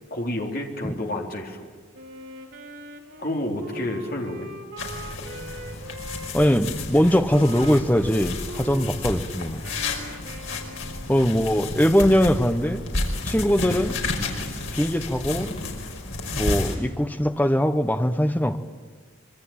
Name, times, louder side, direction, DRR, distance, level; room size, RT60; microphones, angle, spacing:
voice 1, 0.1-1.7 3.2-4.5, left 1 dB, 45° left, 1 dB, 3.6 m, -30 dB
Wind instrument woodwind instrument, 1.9-6.6 7.3-11.2, right 1 dB, 65° right, 4.6 m, -41 dB
sound 1, 4.8-16.8, left 2 dB, 80° left, 5.2 m, -31 dB
voice 2, 6.3-9.6 11.1-12.8 13.2-14.0 14.7-15.5 16.3-18.6, equal, 10° left, 8 dB, 1.1 m, -21 dB
25.5 x 24.0 x 9.0 m, 1.5 s
head